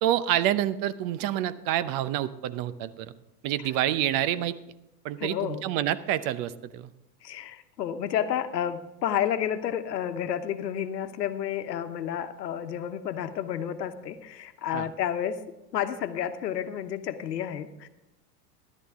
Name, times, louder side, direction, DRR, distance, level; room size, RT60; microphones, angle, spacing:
voice 1, 0.0-3.1 3.4-4.5 5.0-6.9 14.7-14.9, right 12 dB, 45° right, 15 dB, 0.8 m, -27 dB
voice 2, 5.2-5.6 7.2-15.4 15.7-17.9, left 9 dB, 90° left, 9 dB, 1.1 m, -31 dB
13.5 x 11.5 x 3.6 m, 0.95 s
hypercardioid pair, 105°, 48 cm